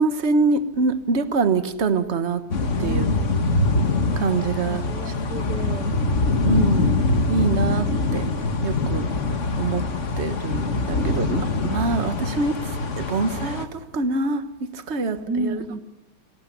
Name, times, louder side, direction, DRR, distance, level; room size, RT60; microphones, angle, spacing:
voice 1, 0.0-2.4 2.8-3.1 4.2-5.1 6.4-6.9 7.3-8.3 8.6-9.1 9.6-9.8 10.2-14.5 14.7-15.8, right 4 dB, 35° right, 11 dB, 1.4 m, -25 dB
sound 1, 2.5-13.6, left 3 dB, 35° left, 1.7 m, -23 dB
voice 2, 2.8-3.5 4.7-6.0 15.3-15.8, right 2 dB, 50° right, 6 dB, 1.7 m, -31 dB
26.0 x 17.5 x 10.0 m, 0.92 s
omnidirectional pair, 2.4 m